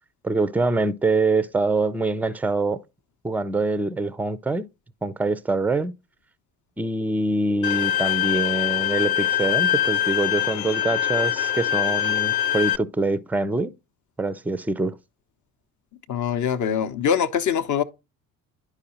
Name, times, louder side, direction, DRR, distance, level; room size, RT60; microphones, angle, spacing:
voice 1, 0.2-2.8 3.2-4.7 5.0-5.9 6.8-13.7 14.2-15.0, right 2 dB, 5° right, 0.4 m, -24 dB
Bowed string instrument, 7.6-12.8, left 11 dB, 75° left, 0.5 m, -23 dB
voice 2, 16.1-17.8, left 8 dB, 40° left, 0.8 m, -23 dB
10.5 x 4.8 x 2.9 m
hypercardioid pair, 55°, 44 cm